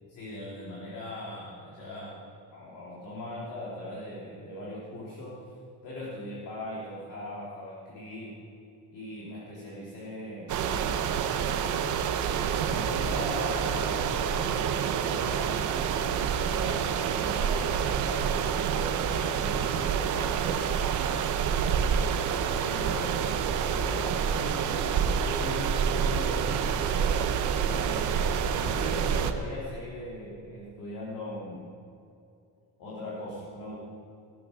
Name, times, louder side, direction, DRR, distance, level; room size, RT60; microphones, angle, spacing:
voice 1, 0.1-5.4 5.8-8.4 8.9-10.9 11.4-11.8 12.3-15.8 16.5-20.7 22.5-27.2 27.5-31.7 32.8-33.8, left 1 dB, 45° left, -5 dB, 3.0 m, -40 dB
sound 1, 10.5-29.3, right 7 dB, 45° right, 0.9 m, -28 dB
17.5 x 12.5 x 6.4 m, 2.5 s
cardioid pair, 180°, 43 cm